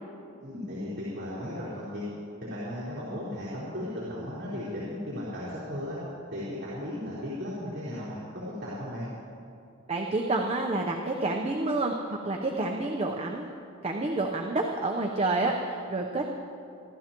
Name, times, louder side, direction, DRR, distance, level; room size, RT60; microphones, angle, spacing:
voice 1, 0.4-2.0 2.4-6.0 6.3-9.1, left 1 dB, 50° right, -9 dB, 4.2 m, -36 dB
voice 2, 9.9-13.5 13.8-16.3, right 2 dB, 30° right, 1 dB, 0.8 m, -29 dB
26.5 x 12.5 x 3.0 m, 2.6 s
head